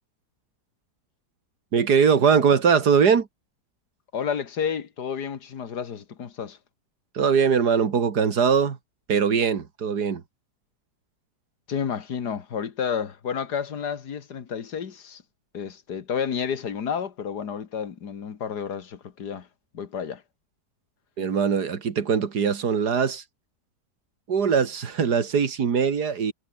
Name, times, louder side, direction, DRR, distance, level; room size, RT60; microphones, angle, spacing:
voice 1, 1.7-3.3 7.1-8.8 9.1-10.2 21.2-23.2 24.3-26.3, right 6 dB, 70° right, 2.4 m, -21 dB
voice 2, 4.1-6.6 11.7-15.2 15.5-19.5 19.7-20.2, left 7 dB, 75° left, 2.2 m, -31 dB
omnidirectional pair, 1.8 m